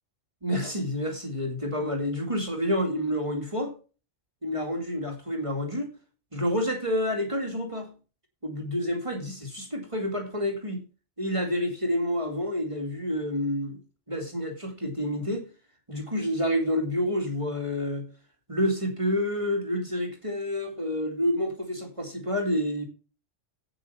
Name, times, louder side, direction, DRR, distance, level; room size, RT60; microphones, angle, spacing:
voice 1, 0.4-3.7 4.4-5.9 6.3-7.9 8.4-10.8 11.2-13.8 14.1-15.5 15.9-18.1 18.5-22.8, equal, 25° right, 2.2 m, -28 dB
8.5 x 7.9 x 5.6 m
omnidirectional pair, 1.3 m